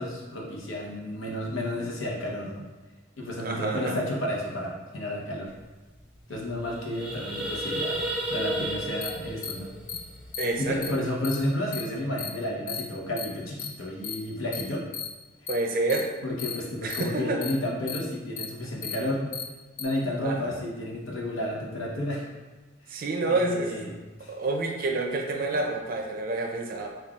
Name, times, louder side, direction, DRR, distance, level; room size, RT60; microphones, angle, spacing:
voice 1, 0.0-2.6 3.2-5.5 6.3-9.7 10.6-14.9 16.2-19.3 19.8-22.3 22.9-23.0 23.3-23.9 24.2-24.3, left 1 dB, 90° left, -3 dB, 0.8 m, -31 dB
voice 2, 3.4-4.0 10.4-10.8 15.5-16.1 16.8-17.4 20.2-20.5 22.9-24.0 24.3-26.9, right 2 dB, 45° right, 2 dB, 0.4 m, -28 dB
sound 1, 5.6-5.7 5.9-6.1 6.5-10.8, right 1 dB, 5° right, 0.6 m, -33 dB
sound 2, 9.0-9.1 9.4-9.5 9.9-10.0 10.3-10.5 10.8-10.9 11.2-11.4 11.7-11.8 12.2-12.3 12.7-12.8 13.2-13.3 13.6-13.7 14.0-14.1 14.5-14.6 14.9-15.1 15.5-15.6 15.9-16.0 16.4-16.6 16.9-17.0 17.4-17.5 17.9-18.0 18.4-18.5 18.8-19.0 19.3-19.4 19.8-19.9, left 8 dB, 40° left, 0.4 m, -34 dB
5.3 x 2.3 x 2.4 m, 1.2 s
head